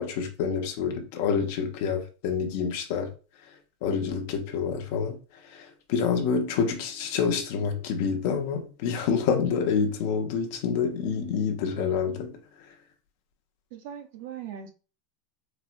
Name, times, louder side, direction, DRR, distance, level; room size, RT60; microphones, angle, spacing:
voice 1, 0.0-3.1 3.8-5.2 5.4-12.4, left 6 dB, 50° left, 0.7 m, -27 dB
voice 2, 13.7-14.7, right 9 dB, 50° right, 0.5 m, -39 dB
4.2 x 2.2 x 2.5 m
supercardioid pair, 175°, 0 cm